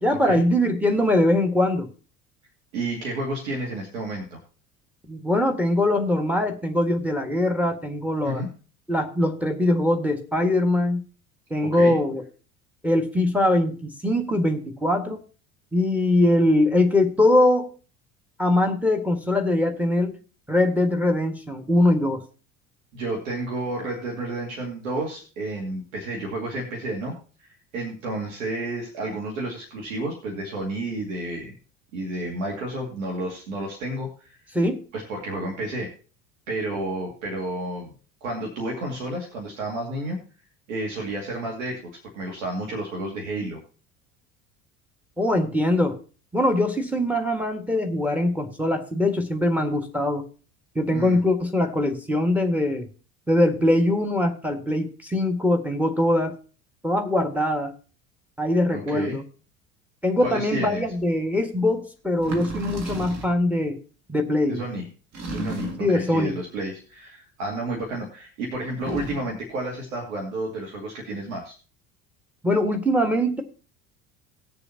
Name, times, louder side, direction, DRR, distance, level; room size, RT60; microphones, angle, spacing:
voice 1, 0.0-1.9 5.1-8.4 8.9-11.0 11.5-12.2 12.8-15.2 15.7-17.7 18.4-20.2 20.5-22.2 34.5-34.8 45.2-46.0 46.3-50.2 50.7-52.9 53.3-56.3 56.8-57.7 58.4-59.2 60.0-63.8 64.1-64.6 65.8-66.3 72.4-73.4, left 1 dB, 5° right, 5 dB, 1.7 m, -22 dB
voice 2, 2.7-4.4 8.2-8.5 11.6-12.0 22.9-27.1 27.4-31.5 31.9-34.4 34.9-35.9 36.5-37.9 38.2-40.2 40.7-41.8 42.1-43.6 50.9-51.2 58.7-59.2 60.2-60.8 64.5-64.9 65.3-71.5, right 2 dB, 65° right, -1 dB, 2.4 m, -31 dB
sound 1, 61.0-61.1 62.2-63.4 65.1-66.0 68.7-69.4, right 1 dB, 40° right, 2.2 m, -32 dB
19.0 x 6.8 x 2.9 m, 0.38 s
figure-of-eight pair, 65°, 41 cm